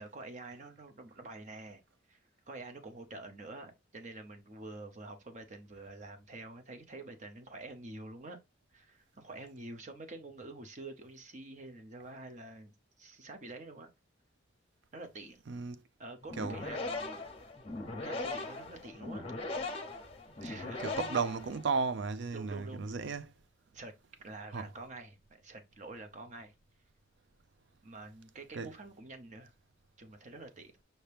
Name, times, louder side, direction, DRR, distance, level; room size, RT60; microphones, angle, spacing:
voice 1, 0.0-1.8 2.1-2.2 2.5-8.4 8.7-12.7 13.0-13.9 14.9-15.4 16.0-17.2 18.0-19.2 20.4-20.8 22.3-23.0 23.7-23.9 24.2-26.5 27.8-29.5 30.0-30.7, right 2 dB, 35° right, 0.8 m, -47 dB
voice 2, 15.5-15.8 16.4-16.6 20.8-23.3 24.5-24.7 28.5-28.7, right 4 dB, 60° right, 0.4 m, -34 dB
sound 1, 16.2-21.9, left 3 dB, 30° left, 0.8 m, -39 dB
5.6 x 2.9 x 3.3 m
head